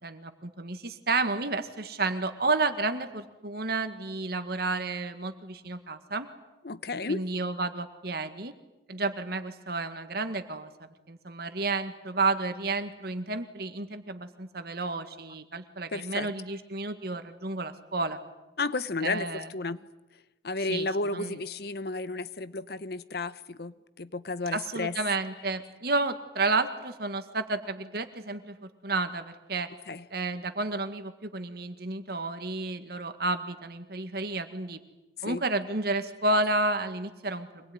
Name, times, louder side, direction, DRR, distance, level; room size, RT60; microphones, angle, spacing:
voice 1, 0.0-6.3 7.1-8.5 8.9-10.7 11.1-18.2 19.0-19.5 20.7-20.9 21.1-21.4 24.5-29.7 30.1-34.8 35.2-37.7, right 3 dB, 60° right, 8 dB, 1.9 m, -31 dB
voice 2, 6.6-7.3 15.9-16.3 18.6-19.9 20.4-24.9 29.9-30.0 35.2-35.4, left 3 dB, 60° left, 15 dB, 0.9 m, -32 dB
25.0 x 21.0 x 9.6 m, 1.1 s
head